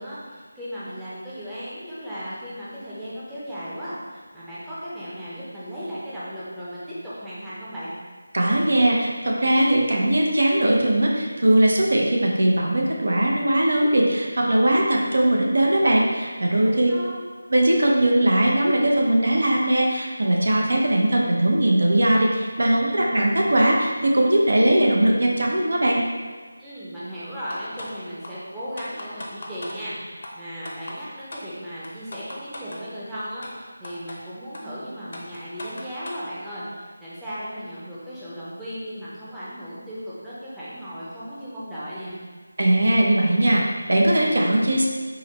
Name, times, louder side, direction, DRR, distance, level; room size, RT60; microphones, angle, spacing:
voice 1, 0.0-7.9 16.6-17.2 26.6-42.2, equal, 5° right, -12 dB, 0.6 m, -36 dB
voice 2, 8.3-16.9 17.5-26.0 42.6-44.9, right 1 dB, 70° right, -1 dB, 0.6 m, -20 dB
sound 1, 27.5-27.9 28.2-28.3 28.8-29.8 30.2-30.3 30.7-31.0 31.3-31.4 31.8-32.8 33.4-33.5 33.8-34.2 34.5-34.6 35.1-36.2, left 1 dB, 55° left, 0.7 m, -37 dB
4.6 x 2.1 x 3.2 m, 1.5 s
figure-of-eight pair, 165°, 0 cm